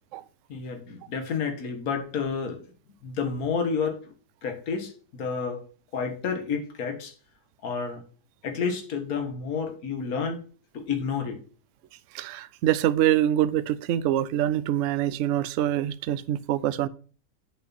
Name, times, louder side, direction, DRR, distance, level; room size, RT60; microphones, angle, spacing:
voice 1, 0.5-2.6 3.0-3.9 4.4-5.6 5.9-7.1 7.6-8.0 8.4-10.4 10.7-11.4, left 5 dB, 55° left, 1.8 m, -30 dB
voice 2, 12.1-16.9, right 12 dB, 85° right, 0.6 m, -25 dB
7.7 x 5.9 x 4.1 m
omnidirectional pair, 1.9 m